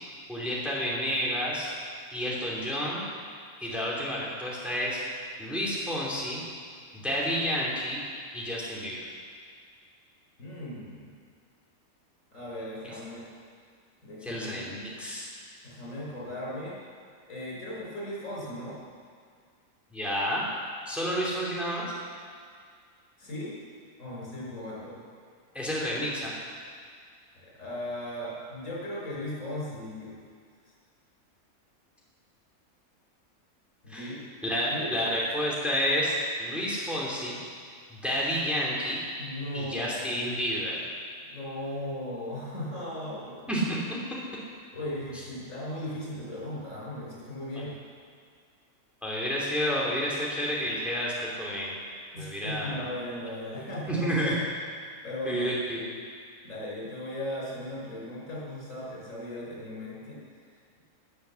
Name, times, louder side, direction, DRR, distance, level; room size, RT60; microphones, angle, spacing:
voice 1, 0.3-1.7 2.1-3.0 3.6-5.0 5.4-6.4 6.9-8.0 8.3-9.1 14.2-15.3 19.9-20.4 20.9-21.9 25.5-26.3 33.9-34.1 34.4-37.4 38.0-39.0 39.5-40.8 43.5-43.8 49.0-51.7 52.2-52.9 53.6-54.4 55.2-55.9, equal, ahead, -5 dB, 3.0 m, -30 dB
voice 2, 10.4-11.1 12.3-13.3 14.0-14.7 15.6-16.8 17.3-18.8 23.2-23.5 24.0-25.0 27.4-30.1 33.8-34.2 34.7-34.9 39.2-40.0 41.2-43.6 44.7-47.7 52.1-54.4 55.0-55.5 56.4-60.2, left 1 dB, 60° left, -5 dB, 5.8 m, -37 dB
18.5 x 9.6 x 7.1 m, 2.1 s
omnidirectional pair, 1.5 m